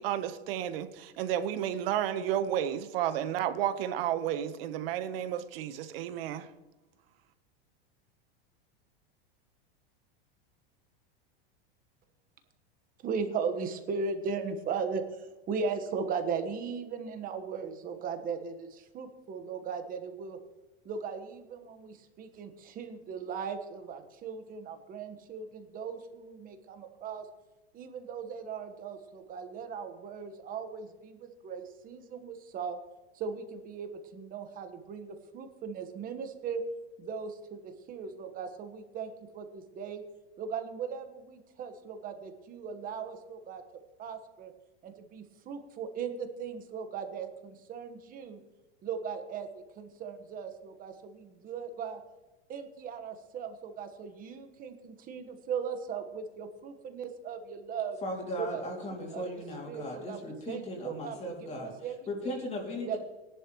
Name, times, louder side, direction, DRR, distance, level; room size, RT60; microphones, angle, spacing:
voice 1, 0.0-6.5, right 10 dB, 65° right, 12 dB, 1.1 m, -32 dB
voice 2, 13.0-20.4 20.8-27.2 27.7-32.8 33.1-36.6 37.0-40.0 40.4-43.6 44.0-44.5 44.8-48.4 48.8-52.0 52.5-58.0 58.4-58.6 58.9-59.2 59.7-62.5 62.9-63.0, right 6 dB, 25° right, 7 dB, 1.3 m, -38 dB
voice 3, 58.0-61.7 62.1-63.0, left 1 dB, 20° left, 0 dB, 2.6 m, -37 dB
19.5 x 11.0 x 3.1 m, 1.1 s
supercardioid pair, 150°, 32 cm